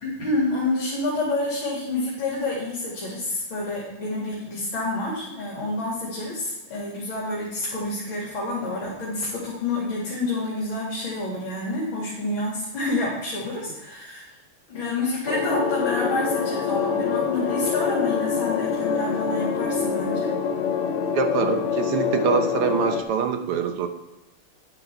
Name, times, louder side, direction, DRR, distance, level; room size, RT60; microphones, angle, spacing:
voice 1, 0.0-14.3 14.7-20.3, left 2 dB, 65° left, -5 dB, 3.2 m, -28 dB
sound 1, 15.3-23.0, left 6 dB, 90° left, 2.0 m, -25 dB
voice 2, 21.1-23.9, right 7 dB, 85° right, 6 dB, 1.9 m, -24 dB
10.0 x 9.3 x 3.4 m, 1.0 s
omnidirectional pair, 2.4 m